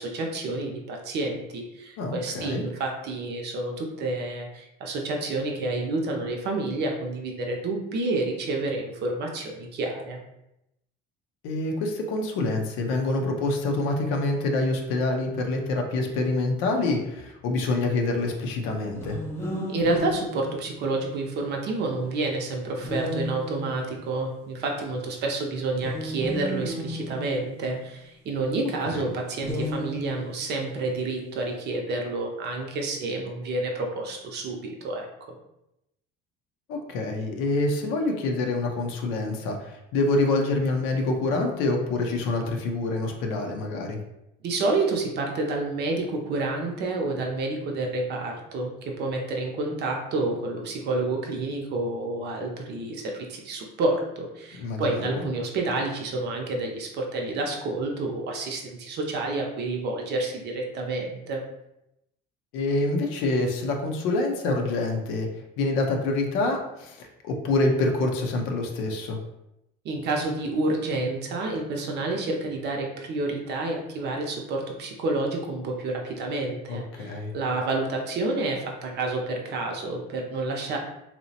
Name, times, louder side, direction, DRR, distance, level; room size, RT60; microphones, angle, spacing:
voice 1, 0.0-10.2 19.7-35.1 44.4-61.4 69.8-80.8, right 2 dB, 55° right, 1 dB, 0.6 m, -29 dB
voice 2, 2.0-2.6 11.4-19.2 28.9-29.0 36.7-44.0 54.6-55.2 62.5-65.3 65.6-69.2 76.7-77.3, left 2 dB, 80° left, 2 dB, 0.5 m, -26 dB
sound 1, 18.9-21.2 22.8-24.0 25.7-28.0 29.4-30.5, equal, 10° left, 0.5 m, -34 dB
2.8 x 2.0 x 2.7 m, 0.87 s
supercardioid pair, 100°, 21 cm